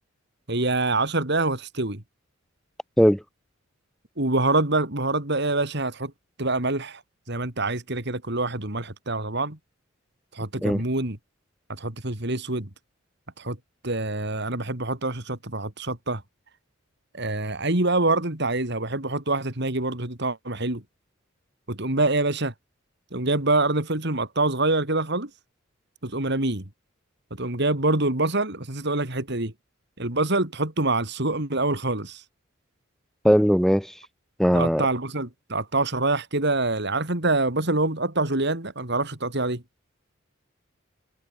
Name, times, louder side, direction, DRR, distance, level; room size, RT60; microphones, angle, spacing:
voice 1, 0.5-2.0 4.2-6.1 6.4-7.0 7.3-9.6 10.3-11.2 11.7-12.7 13.4-13.6 13.8-16.2 17.1-20.8 21.7-22.5 23.1-25.3 26.0-26.7 27.3-29.5 30.0-32.2 34.5-39.6, right 2 dB, 55° right, 3.4 m, -25 dB
voice 2, 33.2-33.9 34.4-34.9, equal, ahead, 4.2 m, -19 dB
head